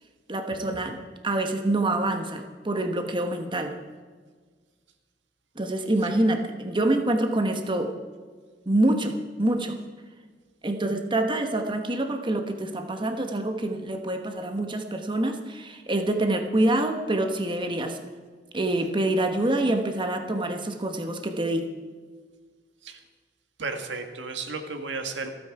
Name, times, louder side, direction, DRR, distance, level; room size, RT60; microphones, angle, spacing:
voice 1, 0.3-3.8 5.6-7.9 8.7-9.8 10.6-18.0 18.5-21.7, right 1 dB, 25° right, 5 dB, 1.2 m, -26 dB
voice 2, 23.6-25.3, right 4 dB, 90° right, 6 dB, 1.7 m, -33 dB
27.5 x 9.4 x 4.8 m, 1.5 s
head